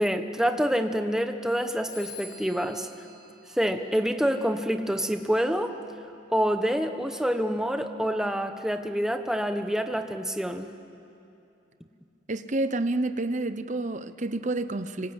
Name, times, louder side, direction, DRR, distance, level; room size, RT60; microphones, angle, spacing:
voice 1, 0.0-2.9 3.6-5.8 6.3-10.7, equal, 5° right, 6 dB, 1.1 m, -27 dB
Telephone, 1.9-4.4, left 3 dB, 75° left, 7.5 m, -47 dB
voice 2, 12.3-15.1, right 2 dB, 40° right, 12 dB, 0.9 m, -29 dB
26.0 x 26.0 x 8.1 m, 2.7 s
head